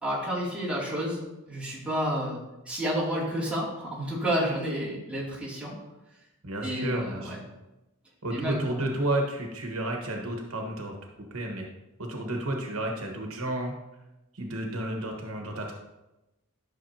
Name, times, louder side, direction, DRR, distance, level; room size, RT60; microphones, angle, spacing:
voice 1, 0.0-1.2 1.5-5.8 6.6-7.4 8.3-8.9, equal, 5° right, -7 dB, 2.6 m, -30 dB
voice 2, 6.4-7.4 8.2-11.0 11.3-11.7 12.0-13.7 14.3-15.7, right 1 dB, 75° right, 2 dB, 1.3 m, -31 dB
12.0 x 6.4 x 2.8 m, 0.97 s
head